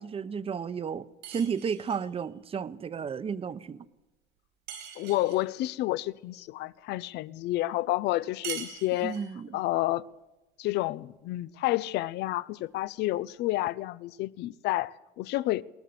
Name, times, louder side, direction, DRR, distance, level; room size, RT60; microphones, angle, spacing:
voice 1, 0.0-3.8 9.0-9.6, right 6 dB, 35° right, 0.9 m, -33 dB
sound 1, 1.2-2.1 4.7-5.5 8.4-9.4, right 8 dB, 90° right, 4.4 m, -41 dB
voice 2, 5.0-9.2 9.5-10.0 10.6-15.6, left 16 dB, 85° left, 0.7 m, -30 dB
21.5 x 18.0 x 6.9 m
cardioid pair, 110°, 17 cm